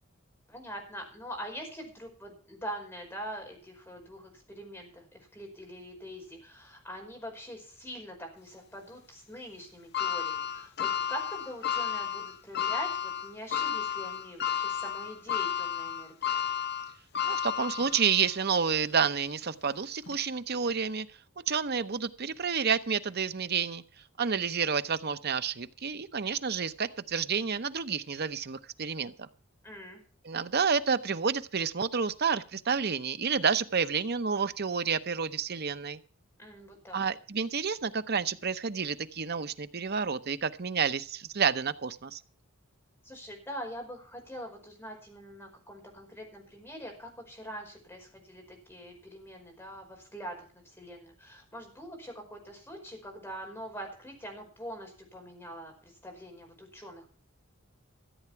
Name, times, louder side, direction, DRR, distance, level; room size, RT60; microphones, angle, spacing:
voice 1, 0.5-16.3 29.6-30.0 36.4-37.0 43.0-57.1, equal, 10° left, 2 dB, 5.1 m, -43 dB
sound 1, 9.9-18.3 18.8-18.9 20.1-20.2, left 9 dB, 55° left, 1.1 m, -32 dB
voice 2, 17.2-21.1 21.5-23.8 24.2-29.3 30.2-36.0 36.9-42.2, right 6 dB, 55° right, 12 dB, 0.9 m, -29 dB
14.5 x 8.8 x 5.8 m, 0.40 s
head